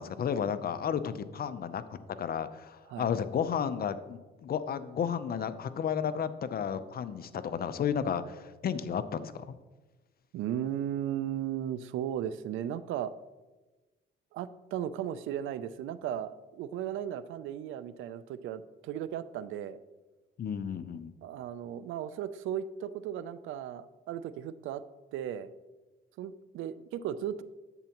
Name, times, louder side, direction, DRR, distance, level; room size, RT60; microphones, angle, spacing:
voice 1, 0.0-9.5 20.4-21.1, left 7 dB, 50° left, 12 dB, 0.6 m, -33 dB
voice 2, 10.3-13.1 14.3-19.8 21.2-24.8 25.1-25.5 26.2-27.4, right 10 dB, 85° right, 15 dB, 0.5 m, -36 dB
10.5 x 8.1 x 3.0 m, 1.2 s
cardioid pair, 90°, 20 cm